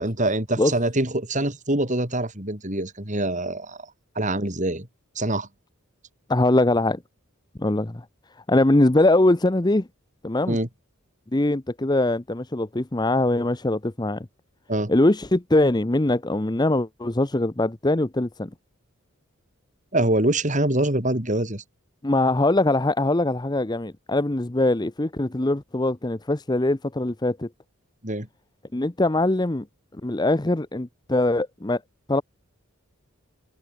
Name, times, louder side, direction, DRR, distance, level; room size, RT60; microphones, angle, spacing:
voice 1, 0.0-3.8 4.1-4.9 5.1-5.5 10.5-10.7 14.7-14.9 19.9-21.6 28.0-28.3, right 1 dB, 35° right, 4.7 m, -24 dB
voice 2, 6.3-7.0 7.6-8.0 8.5-9.9 10.2-10.6 11.3-14.3 14.9-18.5 22.0-27.5 28.7-29.7 30.0-31.8 32.1-32.2, left 2 dB, 20° left, 0.8 m, -22 dB
head